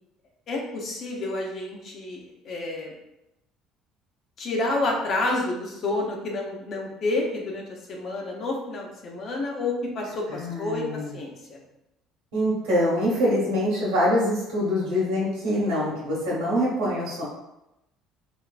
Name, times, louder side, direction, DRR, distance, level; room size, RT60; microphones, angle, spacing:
voice 1, 0.5-2.9 4.4-10.8 11.1-11.6, left 2 dB, 50° left, -1 dB, 0.8 m, -29 dB
voice 2, 10.3-11.1 12.3-17.2, equal, 85° right, -7 dB, 1.3 m, -24 dB
3.3 x 2.8 x 2.4 m, 0.89 s
supercardioid pair, 80°, 0 cm